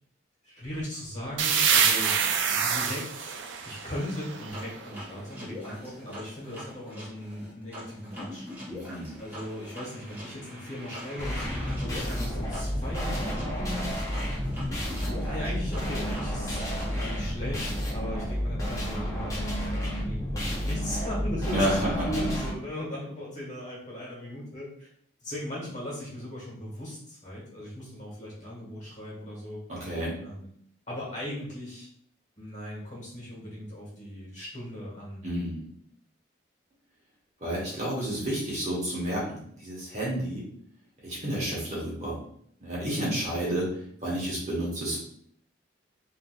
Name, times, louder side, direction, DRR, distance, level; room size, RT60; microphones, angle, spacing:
voice 1, 0.4-3.3 3.6-8.4 9.2-13.9 15.0-24.9 25.2-29.6 30.2-30.5 30.9-31.9 32.4-35.2 42.8-43.2, left 1 dB, 40° left, -5 dB, 1.4 m, -38 dB
sound 1, 1.4-5.0, right 6 dB, 75° right, 0.4 m, -26 dB
sound 2, 4.5-17.3, left 1 dB, 10° right, 1.1 m, -43 dB
voice 2, 8.7-9.1 21.5-22.2 29.7-30.2 35.2-35.7 37.4-40.5 41.0-42.2 42.6-43.7 44.0-45.0, right 1 dB, 35° right, -5 dB, 1.1 m, -30 dB
sound 3, 11.2-22.5, equal, 15° left, 0.6 m, -31 dB
3.5 x 2.7 x 2.3 m, 0.65 s
head